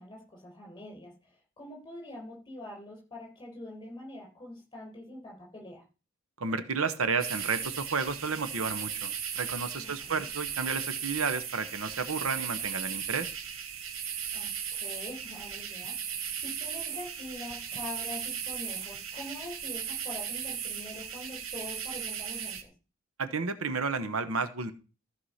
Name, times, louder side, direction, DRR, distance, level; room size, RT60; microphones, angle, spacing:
voice 1, 0.0-5.8 9.7-10.3 14.3-22.6, left 1 dB, 20° left, -1 dB, 5.5 m, -44 dB
voice 2, 6.4-13.3 23.2-24.7, right 4 dB, 90° right, 10 dB, 1.1 m, -32 dB
sound 1, 7.2-22.6, right 8 dB, 75° right, 1.4 m, -37 dB
14.5 x 4.8 x 5.7 m, 0.33 s
head